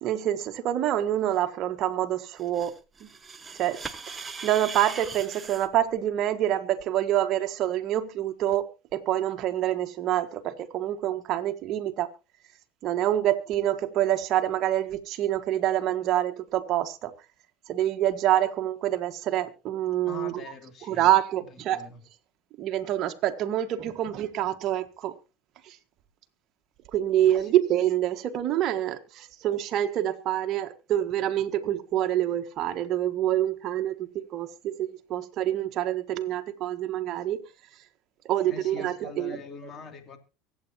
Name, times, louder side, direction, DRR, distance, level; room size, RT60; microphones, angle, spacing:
voice 1, 0.0-2.7 3.0-3.1 3.6-3.8 4.1-12.1 12.8-17.1 17.7-20.3 20.9-21.8 22.6-25.1 25.6-25.8 26.9-37.4 38.2-39.4, right 12 dB, 50° right, 1.6 m, -26 dB
sound 1, 2.4-5.7, right 4 dB, 20° right, 1.2 m, -40 dB
voice 2, 20.1-21.1 21.4-22.0 27.4-27.5 38.5-40.2, left 5 dB, 40° left, 2.8 m, -43 dB
24.0 x 8.6 x 2.9 m
supercardioid pair, 100°, 0 cm